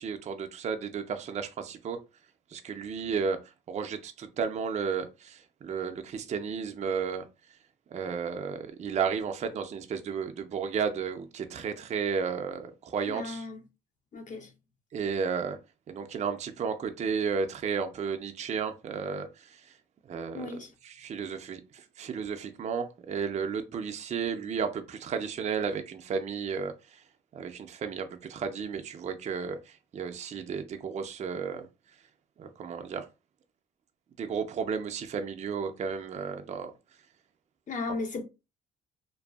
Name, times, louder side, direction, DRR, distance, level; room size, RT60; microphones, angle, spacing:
voice 1, 0.0-2.0 2.5-3.4 3.7-7.3 7.9-13.5 14.9-15.6 15.9-19.8 20.1-20.6 20.8-27.0 27.3-31.7 32.4-33.1 34.2-36.7, right 6 dB, 35° right, 0.4 m, -33 dB
voice 2, 13.1-13.6 14.1-14.5 20.3-20.7 37.7-38.2, left 3 dB, 40° left, 0.7 m, -35 dB
2.5 x 2.3 x 2.3 m
cardioid pair, 90°, 20 cm